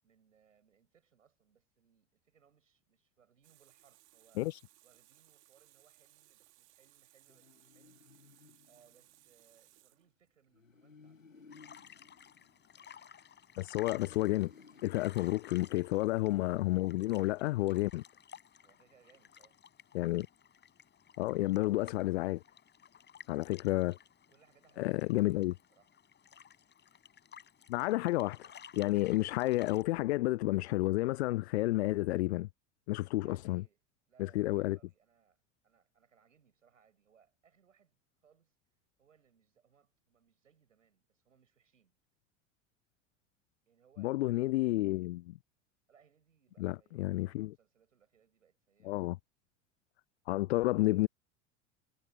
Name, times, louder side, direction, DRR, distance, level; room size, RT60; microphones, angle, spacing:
voice 1, 0.0-4.4 4.8-8.1 8.7-11.7 15.2-15.4 18.6-19.6 23.7-23.9 24.3-25.9 33.2-33.8 34.1-38.6 39.0-42.0 43.7-44.7 45.9-49.2, right 7 dB, 75° right, 7.7 m, -68 dB
Water tap faucet, 3.4-10.4, right 18 dB, 60° right, 2.4 m, -65 dB
sound 1, 7.3-9.4 10.5-13.2 13.7-16.0, left 4 dB, 85° left, 2.0 m, -59 dB
sound 2, 11.5-29.8, left 8 dB, 25° left, 6.5 m, -56 dB
voice 2, 13.6-14.5 14.8-18.0 19.9-20.3 21.2-22.4 23.3-23.9 24.8-25.5 27.7-32.5 32.9-33.6 34.2-34.8 44.0-45.4 46.6-47.5 48.8-49.2 50.3-51.1, left 18 dB, 60° left, 0.5 m, -31 dB
figure-of-eight pair, 75°, 38 cm